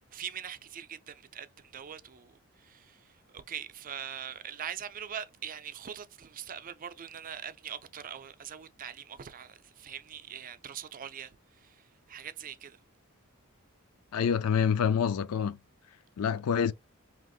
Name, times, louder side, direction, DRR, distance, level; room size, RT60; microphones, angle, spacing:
voice 1, 0.1-1.5 1.7-2.3 2.6-3.0 3.3-11.3 11.6-11.7 12.1-12.8, right 9 dB, 40° right, 0.5 m, -42 dB
voice 2, 14.1-15.6 16.2-16.7, left 7 dB, 85° left, 0.4 m, -27 dB
5.0 x 3.0 x 2.4 m
head